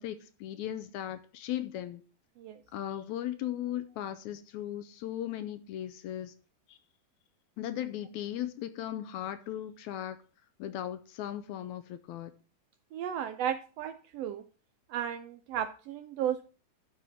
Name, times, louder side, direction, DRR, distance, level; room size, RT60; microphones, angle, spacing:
voice 1, 0.0-2.0 2.7-6.3 6.7-6.8 7.6-10.2 10.6-12.3, left 11 dB, 80° left, 1.9 m, -37 dB
voice 2, 12.9-14.4 14.9-16.4, right 9 dB, 85° right, 1.4 m, -34 dB
12.0 x 4.2 x 6.1 m
omnidirectional pair, 3.5 m